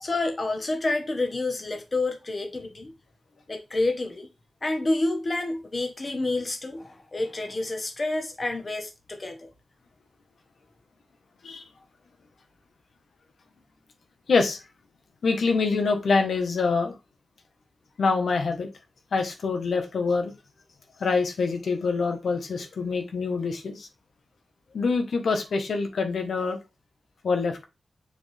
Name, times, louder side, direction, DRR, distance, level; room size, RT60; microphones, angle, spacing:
voice 1, 0.0-2.9 3.5-4.3 4.6-9.5, left 2 dB, 30° left, 1.3 m, -28 dB
voice 2, 14.3-14.6 15.2-16.9 18.0-18.7 19.1-20.3 21.0-23.9 24.7-26.6 27.2-27.7, left 4 dB, 85° left, 1.3 m, -25 dB
6.9 x 4.4 x 3.5 m
wide cardioid pair, 165°, 0 cm